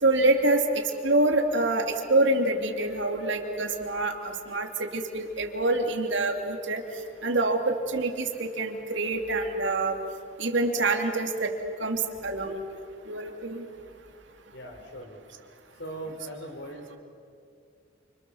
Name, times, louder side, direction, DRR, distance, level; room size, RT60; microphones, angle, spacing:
voice 1, 0.0-6.8 7.2-10.0 10.4-11.5 11.8-13.6, right 2 dB, 65° right, 3 dB, 3.0 m, -26 dB
voice 2, 14.5-15.2 15.8-17.0, right 1 dB, 60° left, 5 dB, 4.4 m, -39 dB
29.5 x 26.5 x 7.3 m, 2.5 s
head